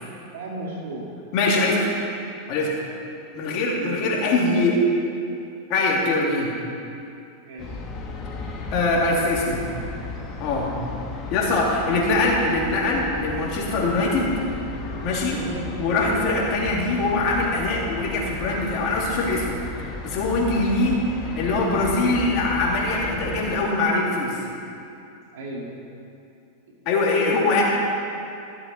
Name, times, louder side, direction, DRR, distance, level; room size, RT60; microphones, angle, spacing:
voice 1, 0.3-1.1 3.7-4.1 7.4-7.8 15.2-15.7 20.8-21.1 21.9-22.1 23.0-23.6 25.3-25.7 26.7-26.8, right 2 dB, 75° right, -2 dB, 2.5 m, -35 dB
voice 2, 1.3-1.9 2.5-2.7 3.3-4.9 5.7-6.5 8.7-9.6 10.4-10.7 11.3-14.3 15.0-15.4 15.8-19.6 20.0-24.4 26.9-27.6, left 2 dB, 50° left, -3 dB, 2.7 m, -22 dB
sound 1, 7.6-23.6, left 3 dB, 35° left, 1.6 m, -35 dB
14.5 x 7.7 x 4.3 m, 2.6 s
hypercardioid pair, 110°, 0 cm